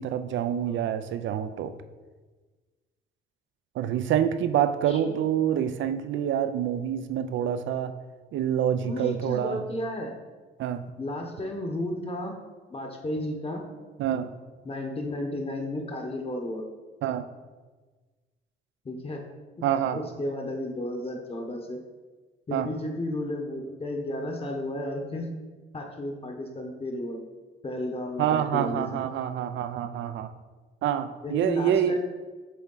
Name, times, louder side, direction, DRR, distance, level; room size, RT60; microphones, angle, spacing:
voice 1, 0.0-1.8 3.8-7.9 8.3-9.6 10.6-10.8 14.0-14.3 17.0-17.3 19.6-20.0 22.5-22.7 28.2-30.3 30.8-32.0, right 9 dB, 75° right, 11 dB, 0.5 m, -27 dB
voice 2, 4.9-5.2 8.8-10.1 11.0-12.3 12.7-13.6 14.6-16.6 18.8-19.3 19.9-21.8 22.5-25.3 25.7-27.2 27.6-28.9 31.2-32.0, left 1 dB, 30° left, 3 dB, 0.9 m, -33 dB
7.6 x 3.5 x 3.8 m, 1.3 s
cardioid pair, 90°, 20 cm